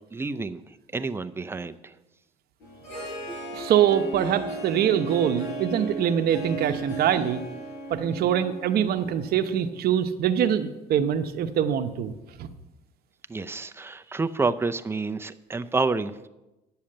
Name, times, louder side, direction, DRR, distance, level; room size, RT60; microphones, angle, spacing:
voice 1, 0.0-1.9 13.3-16.3, right 3 dB, 15° right, 10 dB, 0.5 m, -29 dB
Harp, 2.6-9.7, right 2 dB, 90° left, 5.0 m, -36 dB
voice 2, 3.5-7.4 7.9-12.1 12.4-12.5, right 9 dB, 65° right, 9 dB, 0.9 m, -24 dB
10.0 x 7.1 x 7.8 m, 0.99 s
cardioid pair, 110°, 17 cm